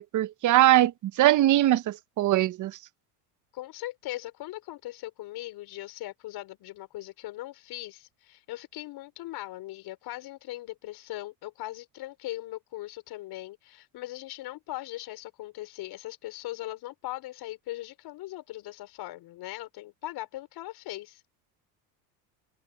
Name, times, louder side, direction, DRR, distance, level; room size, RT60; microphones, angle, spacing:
voice 1, 0.0-2.8, right 14 dB, 45° right, 0.9 m, -22 dB
voice 2, 3.5-21.2, left 16 dB, 60° left, 5.4 m, -39 dB
open air
supercardioid pair, 100°, 43 cm